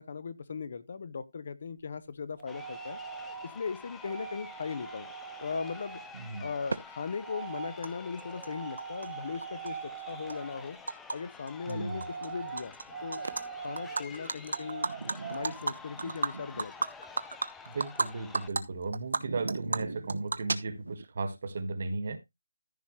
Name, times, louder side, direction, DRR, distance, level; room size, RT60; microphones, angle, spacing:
voice 1, 0.0-3.0 3.4-5.1 5.4-6.0 6.4-10.8 11.1-12.7 13.0-13.2 13.6-14.9 15.3-16.7, left 5 dB, 40° left, 0.9 m, -38 dB
Crowd, 2.4-18.5, left 5 dB, 5° left, 0.5 m, -49 dB
sound 1, 2.4-3.5 4.0-6.1 7.2-7.8 8.2-10.7 11.8-14.1 14.5-15.5, right 7 dB, 25° right, 1.2 m, -42 dB
voice 2, 6.1-6.5 11.7-12.0 17.6-22.2, right 3 dB, 40° right, 1.6 m, -35 dB
Animal, 6.7-6.8 7.8-7.9 8.2-9.1 9.4-11.2 11.5-11.7 12.0-12.8 13.1-13.4 13.8-18.1 18.3-18.6 18.9-21.0, right 3 dB, 70° right, 1.1 m, -33 dB
14.5 x 5.7 x 3.1 m
hypercardioid pair, 175°, 0 cm